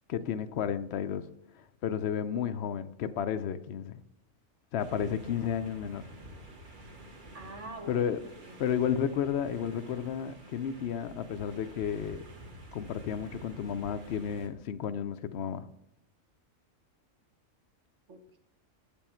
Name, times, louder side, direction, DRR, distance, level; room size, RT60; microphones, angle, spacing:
voice 1, 0.1-1.3 1.5-3.9 4.7-6.0 7.9-8.2 8.6-12.2 12.7-15.7, left 8 dB, 60° left, 0.8 m, -32 dB
sound 1, 4.8-14.5, right 1 dB, 40° right, 1.3 m, -49 dB
voice 2, 7.3-8.6 18.1-18.4, right 2 dB, 60° right, 1.5 m, -46 dB
8.8 x 7.3 x 4.4 m
omnidirectional pair, 1.4 m